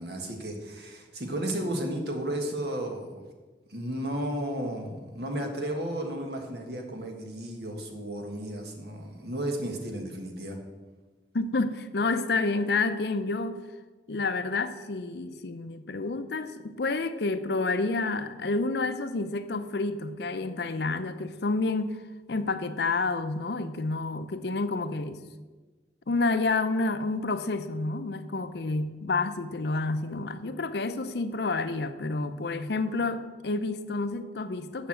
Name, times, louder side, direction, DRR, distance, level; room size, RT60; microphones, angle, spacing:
voice 1, 0.0-3.3 3.7-10.6, right 1 dB, 65° right, 3 dB, 1.5 m, -33 dB
voice 2, 11.3-13.6 14.1-22.0 22.3-25.2 26.1-34.9, left 3 dB, 65° left, 11 dB, 0.6 m, -29 dB
7.0 x 6.4 x 7.5 m, 1.3 s
head